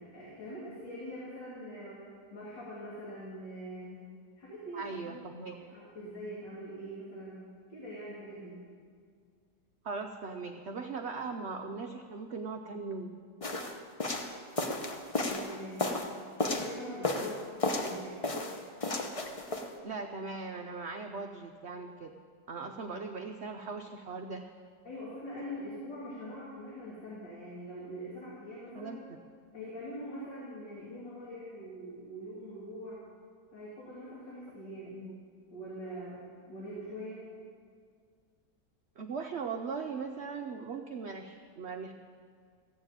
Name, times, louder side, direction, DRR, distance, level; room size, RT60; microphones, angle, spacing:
voice 1, 0.0-2.0 2.3-4.0 4.4-5.2 5.6-7.4 7.7-8.6 15.2-15.9 16.5-17.5 17.8-18.5 24.8-29.0 29.5-33.0 33.5-35.0 35.5-36.2 36.4-37.2, equal, 85° left, -7 dB, 3.3 m, -43 dB
voice 2, 4.7-5.6 9.8-13.1 19.8-22.1 22.5-24.5 28.7-29.0 34.9-35.2 39.0-41.9, right 4 dB, 60° right, 4 dB, 0.7 m, -39 dB
sound 1, 13.4-16.7 17.0-18.0 18.2-19.7, left 2 dB, 30° left, 0.6 m, -33 dB
15.0 x 7.3 x 8.9 m, 2.1 s
omnidirectional pair, 1.9 m